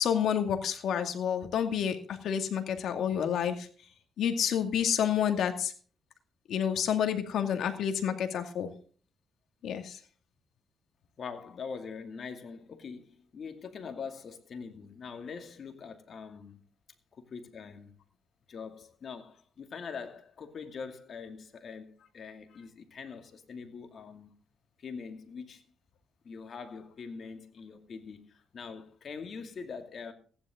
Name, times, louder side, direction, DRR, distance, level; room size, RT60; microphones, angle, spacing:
voice 1, 0.0-3.7 4.2-5.7 6.5-8.7 9.6-10.0, left 8 dB, 70° left, 2.3 m, -29 dB
voice 2, 11.2-16.6 17.1-17.9 18.5-24.3 24.8-25.6 26.2-30.1, left 5 dB, 50° left, 2.5 m, -43 dB
15.5 x 11.0 x 3.8 m
cardioid pair, 90°, 0 cm